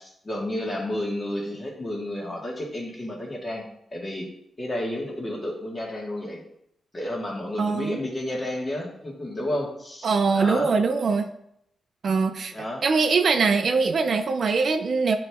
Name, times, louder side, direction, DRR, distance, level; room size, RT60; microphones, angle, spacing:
voice 1, 0.0-3.6 3.9-4.3 4.6-6.4 6.9-10.7 12.5-12.8, left 1 dB, 25° left, -2 dB, 1.9 m, -31 dB
voice 2, 7.6-8.0 10.0-11.3 12.0-15.2, right 4 dB, 60° right, 7 dB, 0.5 m, -22 dB
9.4 x 3.2 x 3.5 m, 0.76 s
cardioid pair, 95°, 0 cm